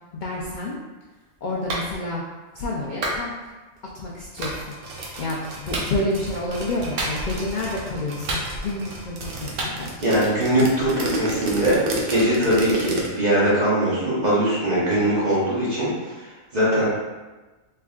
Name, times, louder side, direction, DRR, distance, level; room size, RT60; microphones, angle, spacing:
voice 1, 0.1-0.8 1.4-2.2 2.5-3.3 3.9-4.6 5.2-9.9, left 2 dB, 70° left, -4 dB, 0.4 m, -29 dB
Clapping, 1.7-1.9 3.0-3.2 4.4-4.6 5.7-5.9 7.0-7.4 8.3-8.8 9.6-9.8, right 1 dB, 70° right, 1.0 m, -28 dB
sound 1, 4.4-13.1, right 2 dB, 55° right, 0.7 m, -31 dB
voice 2, 10.0-16.9, right 1 dB, 35° right, -8 dB, 1.1 m, -21 dB
3.7 x 3.3 x 2.3 m, 1.2 s
omnidirectional pair, 1.4 m